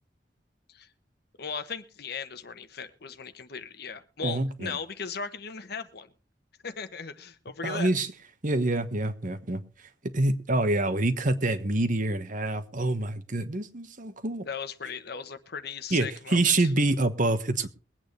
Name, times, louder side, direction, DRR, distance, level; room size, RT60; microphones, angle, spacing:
voice 1, 1.4-6.1 6.6-7.9 14.4-16.7, left 5 dB, 60° left, 10 dB, 1.2 m, -37 dB
voice 2, 4.2-4.7 7.6-8.1 8.4-9.6 10.1-14.5 15.9-17.7, right 2 dB, 45° right, 10 dB, 1.2 m, -26 dB
22.5 x 8.8 x 3.3 m, 0.36 s
head